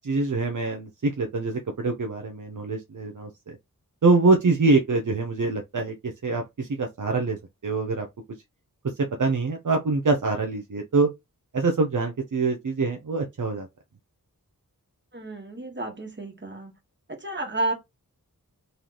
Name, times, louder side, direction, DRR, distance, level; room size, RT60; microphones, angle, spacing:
voice 1, 0.0-3.6 4.0-7.4 7.6-8.1 9.2-11.1 11.5-13.7, right 3 dB, 60° right, 0.8 m, -24 dB
voice 2, 15.1-16.7 17.1-17.7, right 2 dB, 30° right, 1.5 m, -31 dB
3.8 x 3.4 x 3.0 m
wide cardioid pair, 65°, 35 cm